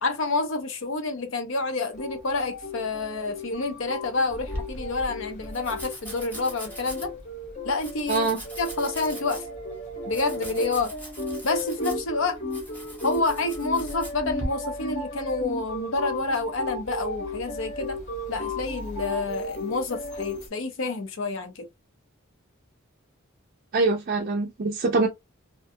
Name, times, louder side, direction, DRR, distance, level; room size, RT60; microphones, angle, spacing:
voice 1, 0.0-7.1 7.6-8.3 8.6-9.5 10.1-10.9 11.4-12.4 13.0-18.0 18.3-21.7, left 3 dB, 65° left, 0.6 m, -28 dB
sound 1, 2.0-20.5, left 1 dB, 35° left, 0.9 m, -35 dB
Domestic sounds home sounds, 4.3-14.5, equal, 10° left, 0.7 m, -40 dB
voice 2, 8.1-8.4 23.7-25.1, right 3 dB, 45° right, 0.4 m, -24 dB
2.5 x 2.2 x 2.7 m
head